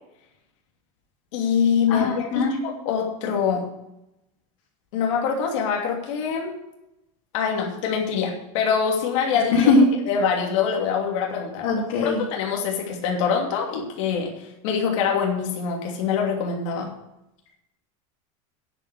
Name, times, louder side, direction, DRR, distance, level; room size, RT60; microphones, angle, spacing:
voice 1, 1.3-3.6 4.9-6.5 7.3-9.7 10.1-11.7 12.0-14.3 14.6-16.9, left 6 dB, 65° left, 0 dB, 2.9 m, -24 dB
voice 2, 1.9-2.5 9.5-9.9 11.6-12.2, left 3 dB, 80° left, -7 dB, 3.8 m, -20 dB
10.0 x 8.3 x 8.2 m, 0.87 s
supercardioid pair, 175°, 17 cm